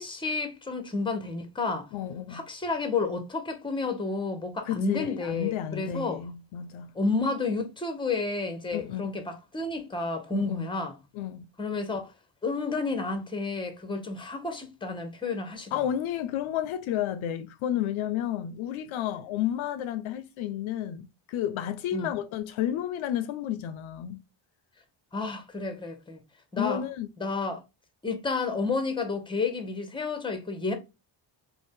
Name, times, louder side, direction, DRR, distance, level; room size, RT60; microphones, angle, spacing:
voice 1, 0.0-1.9 2.3-6.2 6.9-11.0 11.6-12.1 12.4-15.8 21.9-22.1 25.1-26.2 26.5-26.8 27.2-27.6 28.0-30.7, left 3 dB, 10° left, 0.8 m, -31 dB
voice 2, 1.9-2.4 4.7-6.9 8.7-9.1 10.3-10.7 11.1-11.5 15.7-24.2 26.6-27.1, left 10 dB, 70° left, 0.5 m, -31 dB
2.6 x 2.2 x 3.5 m
cardioid pair, 70°, 50 cm